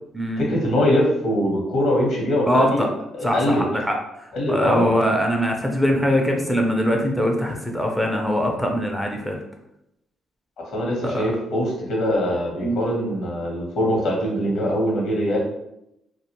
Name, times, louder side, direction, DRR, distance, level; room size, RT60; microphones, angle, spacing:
voice 1, 0.4-2.8 3.2-3.6 4.3-4.9 10.6-15.4, left 1 dB, 75° left, -1 dB, 0.9 m, -22 dB
voice 2, 2.5-2.9 3.2-9.4 11.0-11.3 12.6-12.8, equal, ahead, 1 dB, 0.4 m, -22 dB
2.3 x 2.1 x 2.9 m, 0.83 s
cardioid pair, 90°, 0 cm